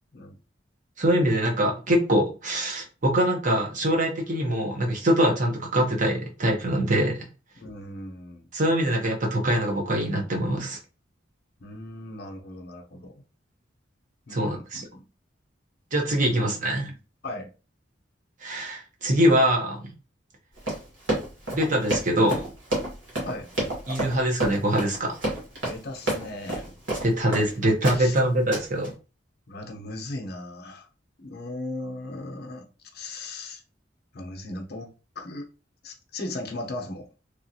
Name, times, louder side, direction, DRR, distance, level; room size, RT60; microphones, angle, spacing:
voice 1, 1.0-7.2 8.5-10.8 14.3-14.8 15.9-16.9 18.4-19.9 21.5-22.5 23.9-25.2 27.0-28.9, right 1 dB, 45° right, 0.9 m, -23 dB
voice 2, 7.6-8.5 11.6-13.1 14.3-15.0 16.3-17.0 17.2-17.5 23.2-23.5 25.7-26.7 27.2-27.7 27.9-28.2 29.5-30.9 31.2-32.7 32.9-33.6 34.1-34.9 35.2-35.5 35.8-37.1, left 2 dB, 60° left, 0.7 m, -37 dB
Run, 20.6-27.5 27.8-28.2 28.5-28.9, right 1 dB, 85° right, 1.6 m, -29 dB
3.1 x 2.4 x 2.7 m
head